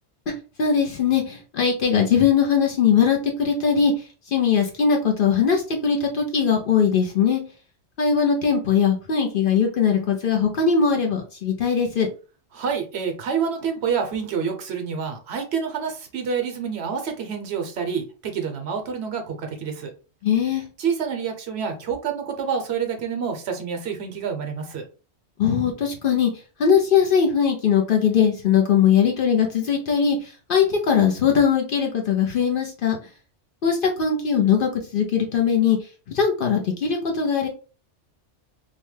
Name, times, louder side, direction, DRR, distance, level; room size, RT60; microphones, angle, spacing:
voice 1, 0.6-3.9 4.3-7.4 8.0-12.1 20.2-20.6 25.4-26.3 26.6-33.0 33.6-35.8 36.1-37.5, left 7 dB, 60° left, 2 dB, 0.6 m, -20 dB
voice 2, 12.5-19.9 20.8-24.8, right 6 dB, 70° right, 4 dB, 0.9 m, -28 dB
2.7 x 2.1 x 3.1 m, 0.35 s
omnidirectional pair, 1.2 m